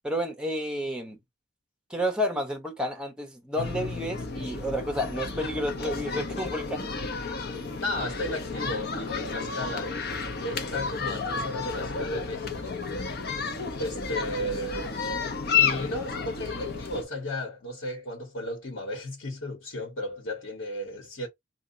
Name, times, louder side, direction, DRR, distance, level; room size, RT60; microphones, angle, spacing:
voice 1, 0.0-1.2 1.9-6.9, equal, 5° right, 0.8 m, -30 dB
sound 1, 3.6-17.0, left 5 dB, 55° left, 0.8 m, -31 dB
voice 2, 7.8-10.0 10.4-12.9 13.8-14.9 15.5-21.3, left 1 dB, 80° left, 1.3 m, -34 dB
2.8 x 2.4 x 3.8 m
head